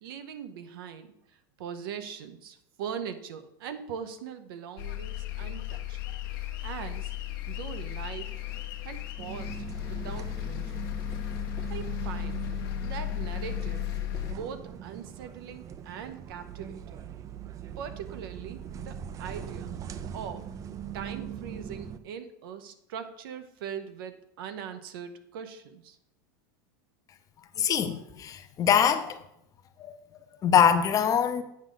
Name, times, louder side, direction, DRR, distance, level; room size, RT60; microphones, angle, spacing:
voice 1, 0.0-6.0 6.4-7.1 7.5-8.4 8.8-10.9 11.7-12.5 12.8-13.9 14.2-17.0 17.8-19.7 20.1-20.5 20.9-26.0, right 7 dB, 75° right, 0.8 m, -41 dB
sound 1, 4.8-14.3, left 17 dB, 70° left, 0.8 m, -35 dB
sound 2, 9.2-22.0, right 8 dB, 30° right, 0.4 m, -41 dB
voice 2, 27.6-29.2 29.8-30.0 30.4-31.4, left 8 dB, 30° left, 0.6 m, -23 dB
8.5 x 5.0 x 3.9 m
supercardioid pair, 125°, 12 cm